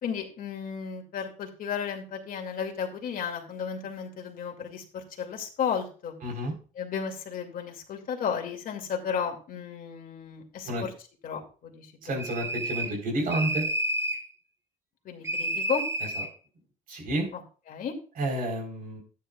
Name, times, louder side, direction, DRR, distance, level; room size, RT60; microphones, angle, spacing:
voice 1, 0.0-6.1 6.7-10.9 11.2-12.2 15.0-15.9 17.3-17.4 17.7-17.9, left 7 dB, 55° left, 2 dB, 2.4 m, -33 dB
voice 2, 6.2-6.5 10.7-10.9 12.0-13.6 16.9-17.3 18.2-19.0, right 1 dB, 55° right, 2 dB, 4.0 m, -30 dB
sound 1, 12.2-13.0 13.3-14.3 15.2-16.3, right 1 dB, 15° right, 0.8 m, -30 dB
12.5 x 9.7 x 2.4 m, 0.38 s
cardioid pair, 110°, 17 cm